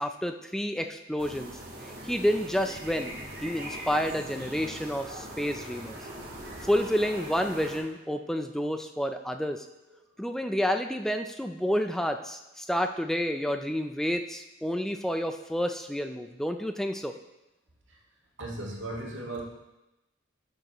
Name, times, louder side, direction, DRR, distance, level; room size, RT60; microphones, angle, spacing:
voice 1, 0.0-1.5 1.8-3.1 3.4-6.0 6.6-9.7 10.2-17.1, equal, ahead, 6 dB, 0.4 m, -29 dB
sound 1, 1.2-7.8, right 1 dB, 45° right, 1.5 m, -41 dB
voice 2, 18.4-19.4, right 2 dB, 70° right, -2 dB, 1.8 m, -36 dB
11.5 x 6.5 x 3.0 m, 0.96 s
head